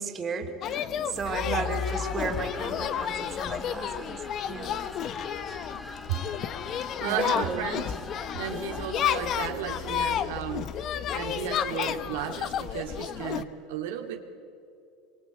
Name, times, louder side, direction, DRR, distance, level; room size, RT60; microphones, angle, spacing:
voice 1, 0.0-4.2 4.5-4.8 7.0-7.7, right 4 dB, 30° right, 4 dB, 3.0 m, -34 dB
sound 1, 0.6-13.4, left 9 dB, 45° left, 1.2 m, -31 dB
voice 2, 1.4-1.8 6.1-6.2 6.7-7.9 8.3-10.7 11.1-14.2, right 9 dB, 85° right, 3 dB, 2.4 m, -34 dB
sound 2, 1.8-9.5, left 1 dB, 10° left, 1.2 m, -44 dB
24.5 x 24.0 x 8.4 m, 2.5 s
supercardioid pair, 110°, 0 cm